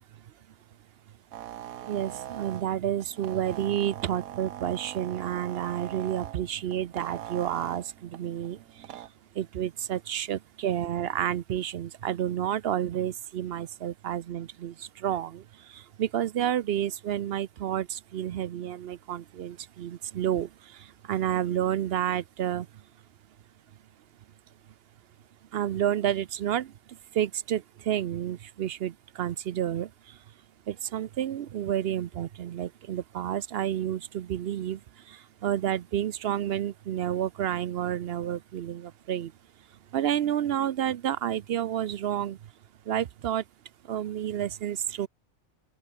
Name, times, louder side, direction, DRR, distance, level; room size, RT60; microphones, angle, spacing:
sound 1, 1.3-9.1, right 12 dB, 85° right, 1.2 m, -42 dB
voice 1, 1.9-8.6 9.4-15.4 15.7-20.5 21.1-22.7 25.5-26.7 27.1-29.9 30.7-34.8 35.1-39.3 39.9-42.4 42.9-43.4 43.9-45.1, right 10 dB, 60° right, 0.7 m, -30 dB
open air
omnidirectional pair, 1.4 m